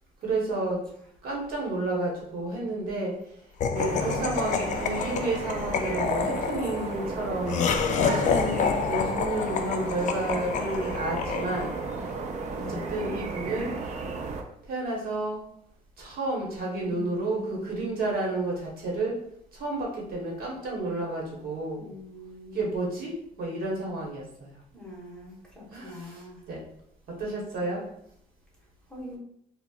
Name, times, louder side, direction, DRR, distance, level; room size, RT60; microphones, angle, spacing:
voice 1, 0.2-0.8 1.2-3.1 3.7-7.6 8.0-11.8 12.5-13.7 14.7-15.4 16.0-19.2 19.5-21.8 22.5-24.6 25.7-26.6 27.1-27.8, right 2 dB, 60° right, -3 dB, 1.0 m, -31 dB
Laughter, 3.6-12.0, left 6 dB, 50° left, 0.4 m, -29 dB
sound 1, 3.7-14.4, right 4 dB, 45° right, 0.5 m, -34 dB
voice 2, 12.5-12.9 16.8-18.1 21.7-22.7 24.7-26.4 28.9-29.2, left 1 dB, 5° left, -4 dB, 1.1 m, -43 dB
4.2 x 2.0 x 2.3 m, 0.71 s
cardioid pair, 110°, 17 cm